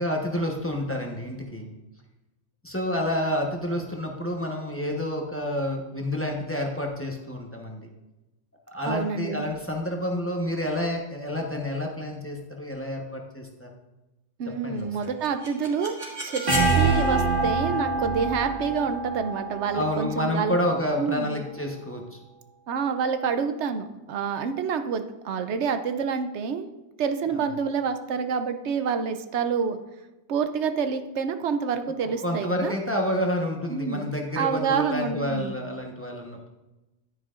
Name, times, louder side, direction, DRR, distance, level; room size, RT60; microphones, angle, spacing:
voice 1, 0.0-1.7 2.6-7.8 8.7-13.7 14.6-14.9 19.7-22.2 27.3-27.4 32.0-36.5, left 1 dB, 10° left, 0 dB, 1.0 m, -29 dB
voice 2, 8.9-9.4 14.4-16.4 16.8-20.6 21.0-21.4 22.7-26.7 27.0-29.8 30.3-32.7 33.7-34.0 34.3-35.6, right 6 dB, 85° right, 9 dB, 1.0 m, -28 dB
sound 1, 15.0-20.9, right 3 dB, 70° right, 2.2 m, -26 dB
10.5 x 9.4 x 2.5 m, 1.0 s
omnidirectional pair, 1.1 m